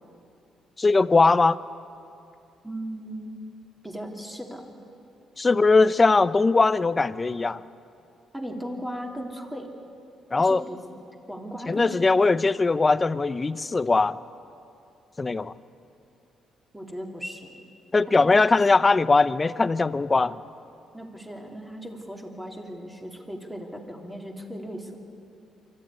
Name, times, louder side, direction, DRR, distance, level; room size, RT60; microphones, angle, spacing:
voice 1, 0.8-1.6 5.4-7.6 10.3-10.6 11.7-14.2 15.2-15.5 17.9-20.4, left 3 dB, 25° left, 15 dB, 0.6 m, -20 dB
voice 2, 2.6-3.4 3.8-4.7 8.3-9.7 10.3-10.8 11.3-12.5 16.7-17.6 18.1-18.5 20.9-24.9, equal, 5° right, 1 dB, 3.1 m, -37 dB
24.5 x 14.0 x 9.8 m, 2.6 s
cardioid pair, 90°, 0 cm